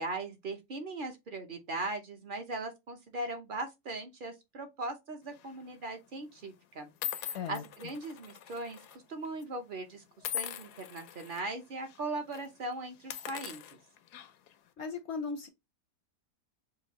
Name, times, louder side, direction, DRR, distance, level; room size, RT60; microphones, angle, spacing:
voice 1, 0.0-8.8 9.1-13.6, right 2 dB, 45° right, 0.7 m, -39 dB
sound 1, 5.3-5.6 6.4-6.5 7.0-9.0 9.2-9.4 10.2-11.4 11.8-12.0 12.3-12.5 13.0-14.5, left 11 dB, 90° left, 1.2 m, -41 dB
voice 2, 14.8-15.5, left 5 dB, 65° left, 0.7 m, -37 dB
5.3 x 2.5 x 2.9 m
omnidirectional pair, 1.6 m